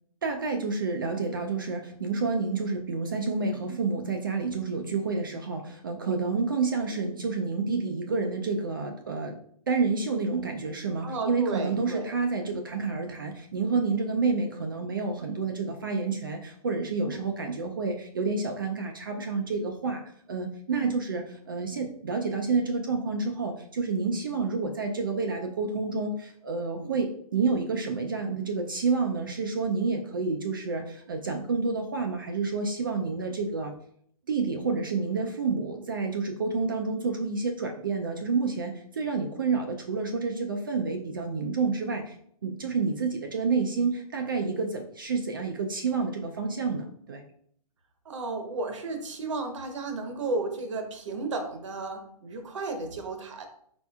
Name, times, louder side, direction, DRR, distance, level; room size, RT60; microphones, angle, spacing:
voice 1, 0.2-9.3 9.7-20.0 20.3-33.7 34.3-42.2 42.4-47.2, right 4 dB, 35° right, 3 dB, 0.4 m, -29 dB
voice 2, 11.0-12.1 17.1-17.2 20.7-20.9 48.0-53.5, right 3 dB, 50° right, 5 dB, 0.9 m, -33 dB
4.5 x 4.3 x 2.3 m, 0.64 s
hypercardioid pair, 170°, 20 cm